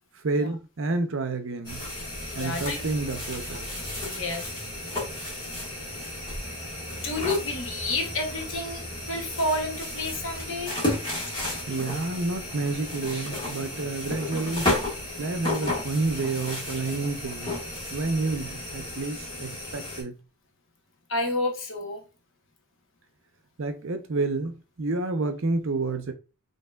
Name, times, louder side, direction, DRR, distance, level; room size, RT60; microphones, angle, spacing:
voice 1, 0.2-1.8 2.3-3.7 11.7-14.7 15.2-17.6 17.9-20.2 23.6-26.1, right 3 dB, 65° right, 0.7 m, -29 dB
sound 1, 1.6-20.0, left 1 dB, 20° left, 1.7 m, -33 dB
voice 2, 2.4-2.8 4.0-4.4 6.9-8.8 9.1-10.8 21.1-22.0, left 2 dB, 65° left, 1.0 m, -30 dB
5.2 x 2.9 x 2.3 m
head